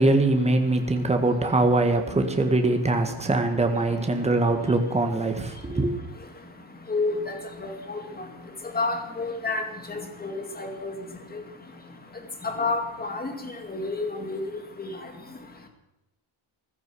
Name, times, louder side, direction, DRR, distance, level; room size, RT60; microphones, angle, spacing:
voice 1, 0.0-6.0, right 2 dB, 15° right, 5 dB, 1.8 m, -22 dB
voice 2, 6.9-7.4 7.6-8.0 8.7-9.6 9.9-10.9 12.4-13.3 13.7-14.4 14.8-14.9, left 3 dB, 20° left, 4 dB, 2.4 m, -29 dB
15.5 x 13.5 x 6.2 m, 0.99 s
cardioid pair, 160°, 50 cm